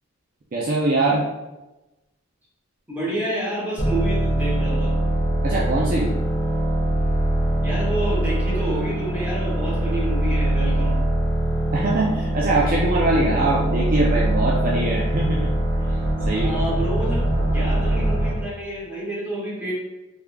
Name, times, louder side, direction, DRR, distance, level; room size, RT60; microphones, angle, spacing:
voice 1, 0.5-1.2 5.4-6.1 11.7-15.5 16.3-16.5, right 2 dB, 45° right, -4 dB, 0.4 m, -22 dB
voice 2, 2.9-4.9 7.6-11.0 16.3-19.7, right 1 dB, 10° right, -9 dB, 1.4 m, -29 dB
sound 1, 3.8-18.5, right 1 dB, 60° left, 1.1 m, -22 dB
3.5 x 3.5 x 2.2 m, 1.1 s
head